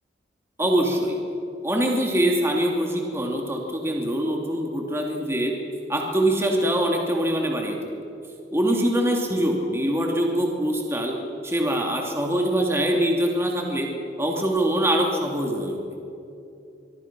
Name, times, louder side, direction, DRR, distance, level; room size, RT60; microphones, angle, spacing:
voice 1, 0.6-1.2 1.6-5.5 5.9-7.8 8.5-11.2 11.4-13.9 14.2-15.8, right 1 dB, 15° right, 0 dB, 2.7 m, -23 dB
25.0 x 24.0 x 6.1 m, 2.7 s
head